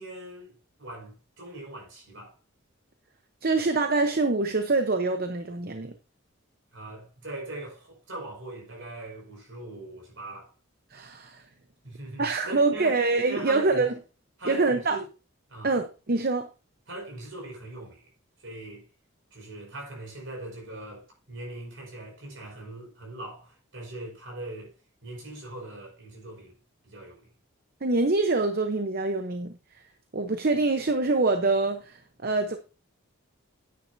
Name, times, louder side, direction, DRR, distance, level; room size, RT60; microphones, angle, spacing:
voice 1, 0.0-2.3 6.7-10.5 11.8-13.0 13.3-13.9 14.4-15.1 15.5-15.8 16.9-18.1 18.4-18.9 19.3-24.7 25.0-26.6 26.8-27.3, right 2 dB, 65° right, 5.4 m, -40 dB
voice 2, 3.4-5.9 10.9-11.4 12.2-13.9 14.5-15.0 15.6-16.5 27.8-29.5 30.1-32.6, right 3 dB, 45° right, 0.8 m, -25 dB
9.8 x 9.6 x 2.7 m
head